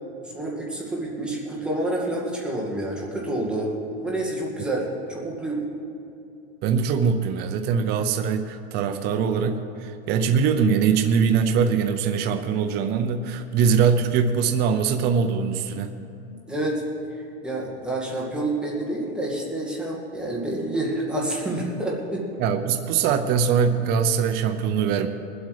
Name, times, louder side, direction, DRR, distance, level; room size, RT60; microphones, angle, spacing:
voice 1, 0.3-3.7 4.0-5.6 16.5-16.8 17.4-22.2, right 1 dB, 5° right, -4 dB, 2.0 m, -28 dB
voice 2, 6.6-15.9 22.4-25.1, right 6 dB, 30° right, 7 dB, 0.6 m, -22 dB
20.0 x 8.0 x 4.9 m, 2.7 s
supercardioid pair, 150°, 31 cm